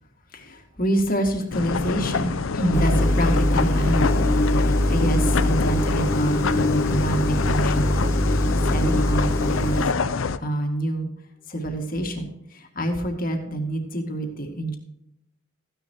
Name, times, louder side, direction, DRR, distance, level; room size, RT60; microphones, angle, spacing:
voice 1, 0.3-4.1 4.5-8.0 8.7-10.0 10.4-11.1 11.5-14.8, right 1 dB, 40° left, 3 dB, 2.1 m, -27 dB
sound 1, 1.5-10.4, left 4 dB, 70° left, 0.5 m, -27 dB
sound 2, 2.7-9.8, left 1 dB, 15° left, 0.5 m, -22 dB
14.5 x 10.0 x 3.0 m, 0.80 s
head